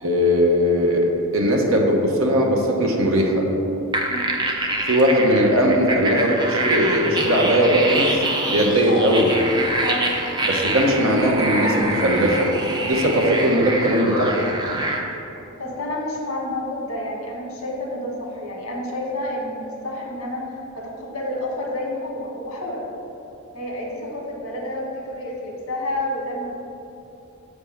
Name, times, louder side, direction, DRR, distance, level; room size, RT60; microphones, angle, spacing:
voice 1, 0.0-3.5 4.9-8.2 8.5-9.3 10.5-12.5 12.8-14.4, equal, 70° right, 0 dB, 0.9 m, -19 dB
sound 1, 3.9-15.0, right 2 dB, 20° right, 0.5 m, -25 dB
voice 2, 4.0-4.3 8.9-9.0 9.8-10.1 15.6-22.8 23.5-26.5, left 1 dB, 70° left, -2 dB, 1.5 m, -29 dB
7.3 x 3.5 x 5.6 m, 2.9 s
head